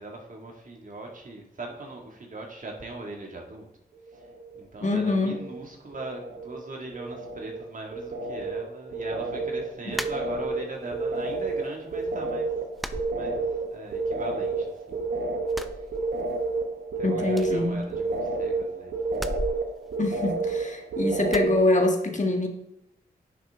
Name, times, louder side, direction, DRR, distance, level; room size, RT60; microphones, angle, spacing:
voice 1, 0.0-3.7 4.1-12.5 13.1-15.2 15.6-15.9 17.0-18.9, right 2 dB, 50° right, 1 dB, 2.3 m, -40 dB
sound 1, 4.1-4.6 4.9-5.7 5.9-21.7, right 3 dB, 85° right, 1.0 m, -31 dB
voice 2, 4.8-5.3 17.0-17.8 20.0-22.5, left 2 dB, 45° left, 3 dB, 1.7 m, -24 dB
sound 2, 9.9-10.8 11.2-11.9 12.2-12.3 12.8-13.9 14.2-15.0 15.4-16.6 16.8-16.9 17.3-18.4 19.1-20.8 21.3-21.6, equal, ahead, 0.6 m, -38 dB
10.0 x 6.5 x 3.7 m, 0.80 s
cardioid pair, 50°, 17 cm